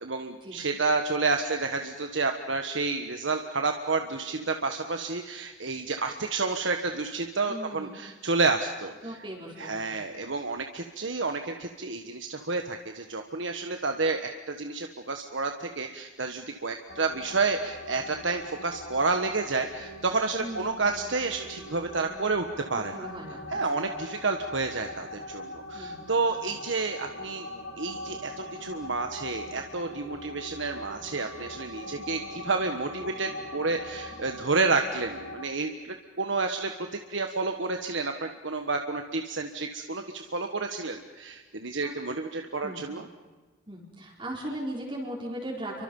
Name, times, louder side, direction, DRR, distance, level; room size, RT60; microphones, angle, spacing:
voice 1, 0.0-9.2 9.6-23.1 23.5-27.5 27.8-36.7 37.1-43.1, right 3 dB, 70° right, 5 dB, 1.4 m, -30 dB
voice 2, 7.5-7.9 9.0-9.9 20.4-20.7 22.7-23.9 25.7-26.0 31.8-31.9 41.8-41.9 42.6-42.8 43.7-45.8, right 1 dB, 25° right, -4 dB, 4.4 m, -38 dB
sound 1, 16.9-35.5, left 1 dB, 70° left, 2.6 m, -42 dB
29.5 x 24.5 x 5.5 m, 1.3 s
head